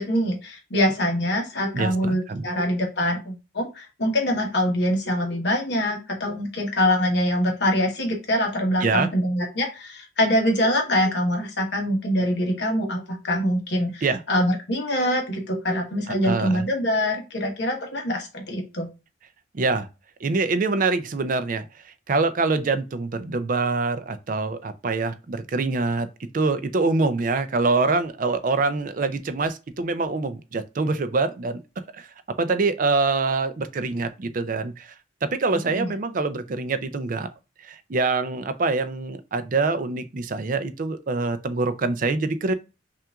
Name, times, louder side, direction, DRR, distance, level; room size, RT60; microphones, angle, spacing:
voice 1, 0.0-18.9 35.7-35.9, equal, 60° left, 1.1 m, -24 dB
voice 2, 1.7-2.5 8.8-9.1 14.0-14.2 16.2-16.6 19.5-19.9 20.2-26.1 26.3-31.6 31.9-32.1 32.4-34.9 35.3-37.3 37.6-42.5, right 3 dB, 45° right, 0.4 m, -25 dB
5.6 x 2.5 x 2.3 m
head